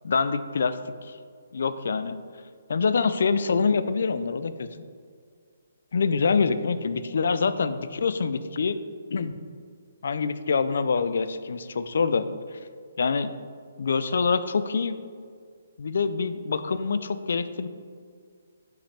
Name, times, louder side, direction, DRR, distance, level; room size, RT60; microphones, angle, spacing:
voice 1, 0.0-1.2 1.5-2.2 2.7-4.7 5.9-8.8 9.1-9.3 10.0-12.3 13.0-13.3 13.8-15.0 15.8-17.7, left 5 dB, 60° left, 12 dB, 0.4 m, -25 dB
5.8 x 5.1 x 4.2 m, 2.1 s
hypercardioid pair, 170°, 0 cm